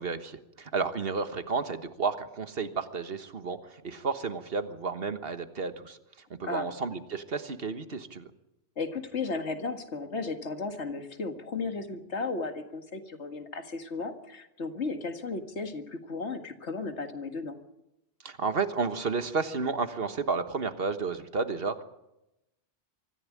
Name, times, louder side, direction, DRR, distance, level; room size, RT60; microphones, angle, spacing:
voice 1, 0.0-6.0 6.4-8.3 18.2-21.8, right 4 dB, 55° right, 10 dB, 1.5 m, -32 dB
voice 2, 8.8-17.6, left 4 dB, 70° left, 7 dB, 2.1 m, -35 dB
24.5 x 14.5 x 8.5 m, 0.91 s
omnidirectional pair, 1.2 m